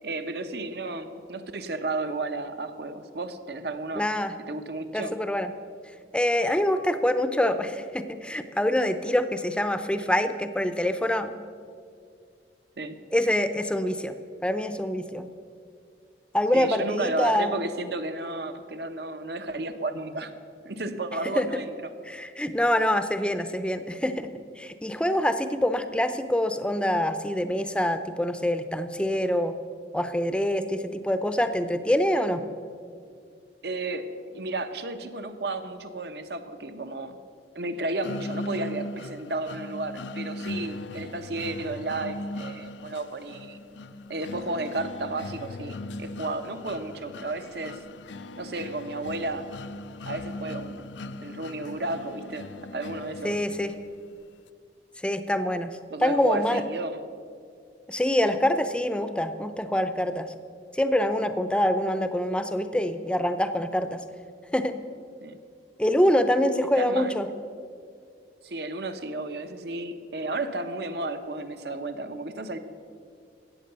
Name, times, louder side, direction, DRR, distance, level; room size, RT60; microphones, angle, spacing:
voice 1, 0.0-4.1 4.4-5.1 12.8-13.0 16.5-20.3 20.6-21.9 33.6-37.2 37.5-43.6 44.1-47.8 48.4-49.4 50.1-50.9 51.2-52.5 52.7-53.4 55.9-57.0 65.2-65.4 66.8-67.1 68.4-72.6, right 2 dB, 65° right, 9 dB, 0.9 m, -33 dB
voice 2, 3.9-4.3 4.9-5.5 6.1-11.3 13.1-14.1 14.4-15.3 16.3-17.5 21.4-21.6 22.1-24.3 24.6-29.5 29.9-32.4 53.2-53.7 55.0-56.6 57.9-60.3 60.7-64.0 64.5-64.8 65.8-67.3, left 1 dB, 5° left, 10 dB, 0.6 m, -25 dB
sound 1, 38.0-54.0, left 2 dB, 85° left, 0.5 m, -39 dB
14.5 x 8.7 x 6.8 m, 2.2 s
head